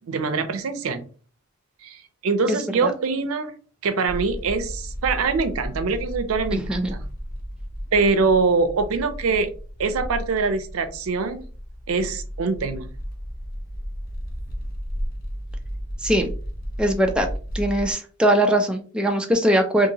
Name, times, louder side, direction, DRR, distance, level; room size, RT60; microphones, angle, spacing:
voice 1, 0.1-1.1 1.8-3.6 3.8-7.0 7.9-9.5 9.8-11.4 11.9-12.9, right 4 dB, 85° right, 10 dB, 0.5 m, -23 dB
voice 2, 2.5-2.9 6.5-6.9 16.0-16.3 16.8-17.3 17.5-19.9, right 1 dB, 5° right, 3 dB, 0.3 m, -21 dB
sound 1, 4.0-17.9, equal, 45° left, 0.6 m, -33 dB
2.8 x 2.6 x 2.8 m, 0.39 s
head